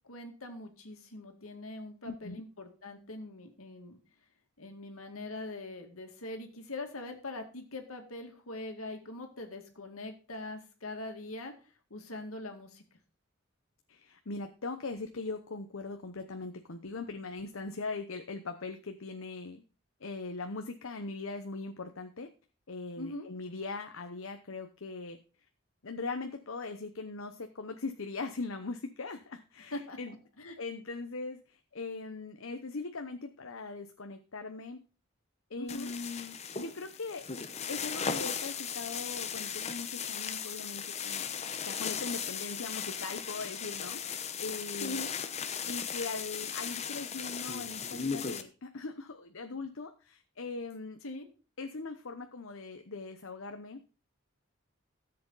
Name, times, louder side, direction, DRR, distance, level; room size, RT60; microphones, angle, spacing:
voice 1, 0.1-4.0 4.6-11.5 11.9-12.8 23.0-23.3 29.7-30.0 30.4-30.6 35.6-35.9 44.8-45.1 51.0-51.3, left 2 dB, 90° left, 5 dB, 2.2 m, -42 dB
voice 2, 2.0-2.4 13.9-19.6 20.0-22.3 22.7-25.2 25.8-30.1 30.6-34.8 35.5-37.2 37.7-41.3 41.6-45.0 45.7-51.0 51.6-53.8, left 3 dB, 75° left, 6 dB, 0.9 m, -40 dB
sound 1, 35.7-48.4, left 7 dB, 30° left, 0.8 m, -37 dB
13.5 x 7.7 x 4.0 m, 0.36 s
head